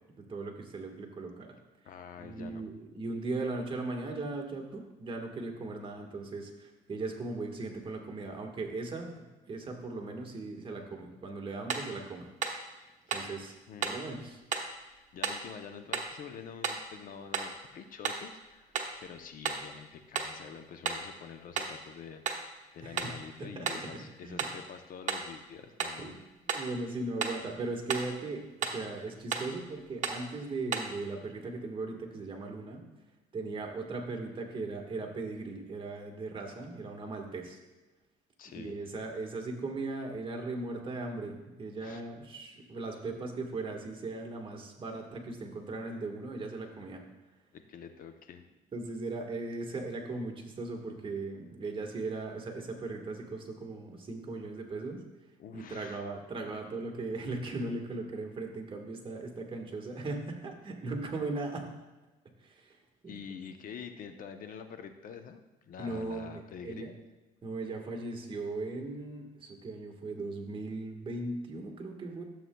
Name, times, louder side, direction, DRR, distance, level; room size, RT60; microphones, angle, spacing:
voice 1, 0.2-1.6 2.2-12.3 13.1-13.6 13.8-14.4 22.8-23.1 23.4-23.7 24.2-24.5 26.0-26.2 26.5-32.8 33.3-37.6 38.5-47.0 48.7-55.0 55.5-61.7 62.4-62.8 63.0-63.2 65.8-66.9 67.4-72.2, right 3 dB, 30° right, 1 dB, 1.5 m, -38 dB
voice 2, 1.8-2.6 13.1-13.3 13.7-14.0 15.1-18.7 19.0-26.2 38.4-38.7 41.8-42.0 47.5-48.4 55.4-56.1 63.1-67.0, left 7 dB, 55° left, 7 dB, 0.7 m, -47 dB
sound 1, 11.7-11.9 12.4-12.6 13.1-13.3 13.8-14.0 14.5-14.7 15.2-15.5 15.9-16.2 16.6-16.9 17.3-17.6 18.0-18.3 18.7-19.0 19.4-19.7 20.1-20.4 20.8-21.1 21.6-21.8 22.2-22.5 23.0-23.2 23.7-23.9 24.4-24.6 25.1-25.3 25.8-26.0 26.5-26.7 27.2-27.4 27.9-28.1 28.6-28.9 29.3-29.5 30.0-30.3 30.7-31.0, right 5 dB, 45° right, 1.0 m, -34 dB
12.5 x 7.6 x 2.3 m, 1.1 s
cardioid pair, 110°, 17 cm